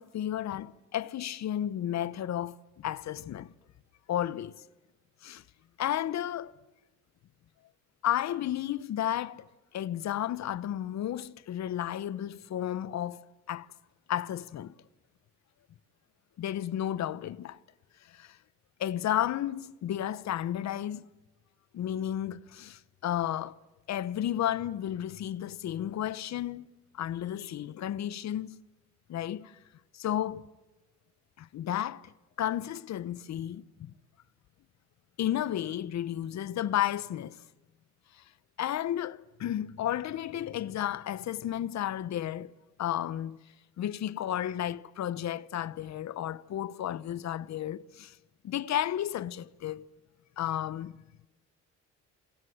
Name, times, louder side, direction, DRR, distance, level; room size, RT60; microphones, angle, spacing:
voice 1, 0.0-3.5 4.1-4.6 5.2-5.4 5.8-6.5 8.0-9.5 9.7-13.7 14.1-14.7 16.4-17.6 18.1-18.4 18.8-21.1 21.7-23.6 23.9-26.7 26.9-28.6 29.1-29.6 29.9-30.4 31.4-32.1 32.4-33.9 35.2-37.4 38.2-38.3 38.6-42.5 42.8-43.4 43.8-48.2 48.4-49.9 50.4-51.3, left 11 dB, 65° left, 0.9 m, -33 dB
28.0 x 26.0 x 7.9 m
cardioid pair, 90°, 30 cm